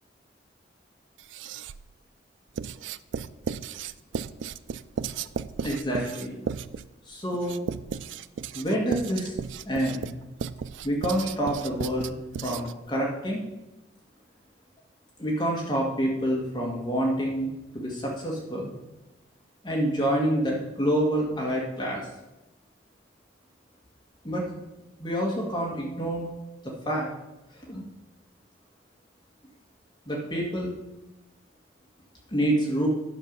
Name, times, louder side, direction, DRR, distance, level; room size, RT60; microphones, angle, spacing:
Writing, 1.2-1.9 2.6-12.9, right 6 dB, 85° right, 0.4 m, -35 dB
voice 1, 5.6-6.4 7.1-7.6 8.5-9.3 9.7-10.1 10.8-12.1 12.4-13.4 15.2-17.5 17.7-18.7 19.6-22.1 24.2-24.6 25.0-26.3 26.6-27.1 27.7-27.8 30.1-30.7 32.3-32.9, equal, 25° left, -2 dB, 1.7 m, -27 dB
9.9 x 6.6 x 5.4 m, 0.99 s
head